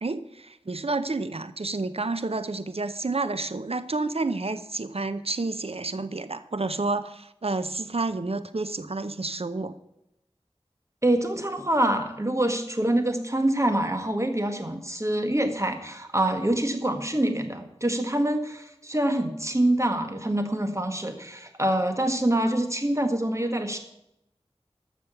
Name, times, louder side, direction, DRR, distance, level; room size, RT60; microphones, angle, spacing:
voice 1, 0.0-9.7, right 3 dB, 65° right, 12 dB, 0.7 m, -30 dB
voice 2, 11.0-23.8, right 1 dB, 30° right, 6 dB, 1.8 m, -25 dB
13.5 x 6.3 x 7.0 m, 0.84 s
wide cardioid pair, 45°, 11 cm